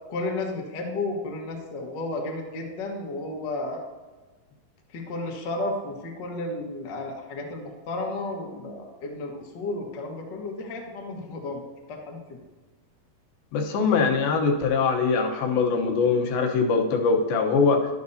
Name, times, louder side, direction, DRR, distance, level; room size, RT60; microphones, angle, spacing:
voice 1, 0.1-3.8 4.9-11.6 11.9-12.4, left 2 dB, 60° left, 0 dB, 1.1 m, -33 dB
voice 2, 13.5-17.9, left 4 dB, 80° left, 2 dB, 2.8 m, -22 dB
11.5 x 11.0 x 2.7 m, 1.2 s
omnidirectional pair, 4.3 m